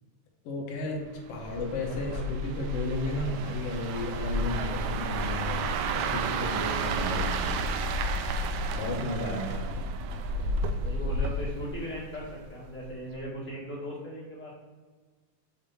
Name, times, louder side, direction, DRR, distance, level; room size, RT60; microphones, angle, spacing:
voice 1, 0.4-5.6 5.9-7.5 8.8-9.7, left 2 dB, 65° left, -1 dB, 1.7 m, -34 dB
sound 1, 1.3-12.5 12.8-13.1, right 2 dB, 85° right, 2.1 m, -31 dB
voice 2, 2.1-2.5 10.8-14.5, equal, 5° left, -6 dB, 0.8 m, -38 dB
6.8 x 2.9 x 5.5 m, 1.4 s
omnidirectional pair, 3.7 m